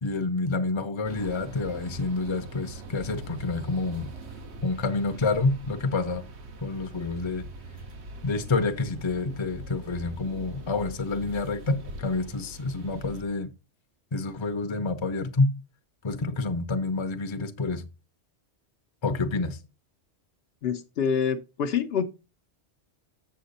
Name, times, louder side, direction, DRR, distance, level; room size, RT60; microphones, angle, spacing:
voice 1, 0.0-4.1 4.6-6.2 6.6-7.4 8.2-13.5 14.1-15.5 16.0-17.9 19.0-19.6, left 3 dB, 30° left, 0.7 m, -28 dB
sound 1, 1.0-13.2, right 1 dB, 75° right, 1.4 m, -42 dB
voice 2, 20.6-22.0, left 7 dB, 65° left, 0.9 m, -26 dB
7.4 x 6.6 x 4.0 m
omnidirectional pair, 1.1 m